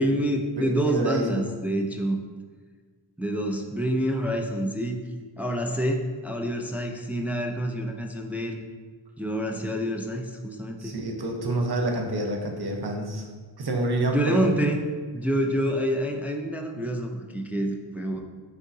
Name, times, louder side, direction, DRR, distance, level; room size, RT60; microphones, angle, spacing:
voice 1, 0.0-2.2 3.2-5.0 5.4-8.6 9.2-11.0 14.1-14.8 15.1-18.2, equal, 5° right, 1 dB, 0.5 m, -27 dB
voice 2, 0.6-1.5 10.8-13.3 13.6-14.4, right 2 dB, 55° right, 1 dB, 1.0 m, -28 dB
9.9 x 3.6 x 2.8 m, 1.5 s
wide cardioid pair, 75°, 46 cm